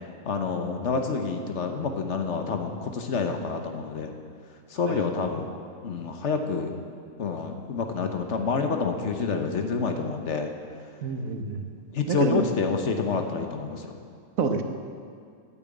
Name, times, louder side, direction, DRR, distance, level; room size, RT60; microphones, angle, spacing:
voice 1, 0.3-4.1 4.7-5.5 5.8-6.7 7.2-10.5 11.9-13.9, left 5 dB, 60° left, 5 dB, 1.3 m, -28 dB
voice 2, 11.0-11.7 12.1-12.4 14.4-14.6, right 5 dB, 90° right, 6 dB, 1.4 m, -27 dB
8.9 x 8.8 x 8.5 m, 2.3 s
omnidirectional pair, 1.4 m